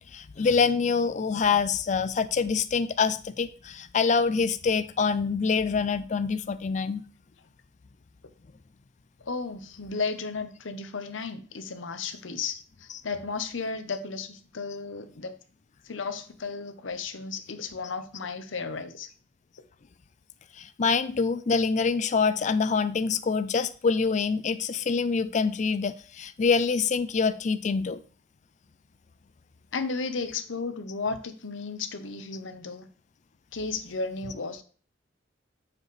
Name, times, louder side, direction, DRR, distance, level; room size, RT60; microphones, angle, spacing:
voice 1, 0.0-7.0 20.6-28.0, left 5 dB, 40° left, 0.4 m, -25 dB
voice 2, 9.3-15.4 15.8-19.1 29.7-32.8 33.5-34.6, left 4 dB, 85° left, 0.9 m, -34 dB
7.2 x 6.7 x 3.2 m
head